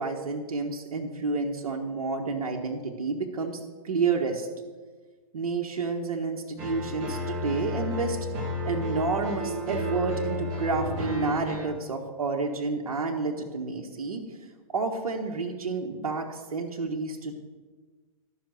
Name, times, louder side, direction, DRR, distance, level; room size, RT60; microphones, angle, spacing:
voice 1, 0.0-4.5 5.3-8.2 8.6-14.2 14.7-17.3, right 4 dB, 80° right, 1 dB, 1.3 m, -30 dB
sound 1, 6.6-11.7, left 1 dB, 35° right, 2.0 m, -32 dB
12.5 x 5.9 x 6.3 m, 1.4 s
hypercardioid pair, 145°, 19 cm